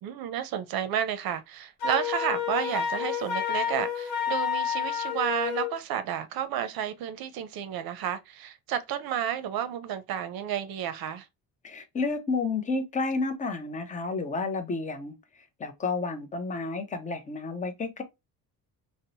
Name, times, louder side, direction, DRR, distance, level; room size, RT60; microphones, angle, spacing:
voice 1, 0.0-11.3, right 9 dB, 70° right, 0.5 m, -31 dB
Wind instrument woodwind instrument, 1.8-5.7, left 8 dB, 80° left, 0.9 m, -29 dB
voice 2, 11.6-15.1 15.6-18.0, left 3 dB, 20° left, 0.4 m, -31 dB
2.8 x 2.0 x 2.6 m
cardioid pair, 155°, 37 cm